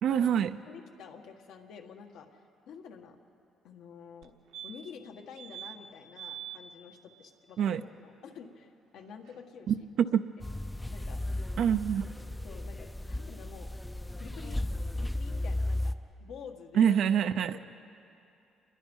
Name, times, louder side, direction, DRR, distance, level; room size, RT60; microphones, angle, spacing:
voice 1, 0.0-0.6 7.6-7.8 9.7-10.2 11.6-12.1 16.7-17.6, right 8 dB, 60° right, 9 dB, 0.6 m, -26 dB
voice 2, 0.6-2.4 2.7-3.2 3.6-4.3 4.6-9.7 10.9-11.2 12.4-13.7 14.2-14.6 14.9-15.9 16.2-17.0 17.5-17.6, left 6 dB, 70° left, 4 dB, 1.7 m, -48 dB
sound 1, 4.2-4.3 4.5-5.0 5.3-5.8 6.1-6.6 9.0-9.1 9.3-9.4, right 10 dB, 80° right, 1.3 m, -43 dB
sound 2, 10.4-15.9, left 1 dB, 5° left, 0.6 m, -35 dB
28.5 x 22.0 x 5.5 m, 2.6 s
cardioid pair, 150°, 0 cm